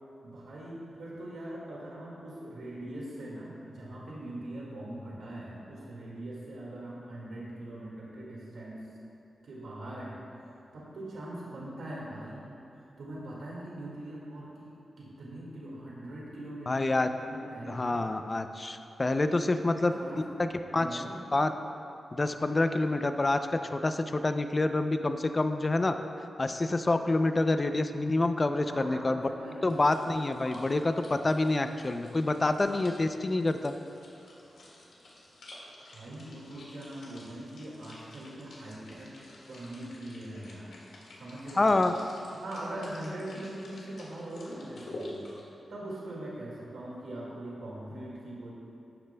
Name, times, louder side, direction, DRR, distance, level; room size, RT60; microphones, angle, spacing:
voice 1, 0.2-8.9 9.4-12.5 12.8-18.0 19.6-20.2 20.7-21.2 28.7-29.7 35.9-40.7 41.2-41.7 42.3-48.5, right 1 dB, 80° right, -5 dB, 1.9 m, -42 dB
voice 2, 16.7-17.1 17.7-19.9 20.4-20.5 20.7-21.0 21.3-21.5 22.1-26.0 26.4-29.3 29.6-33.7 41.6-41.9, left 2 dB, 25° left, 8 dB, 0.4 m, -27 dB
sound 1, 29.7-45.4, left 1 dB, 85° left, 1.8 m, -49 dB
13.0 x 10.0 x 2.2 m, 2.8 s
wide cardioid pair, 160°, 0 cm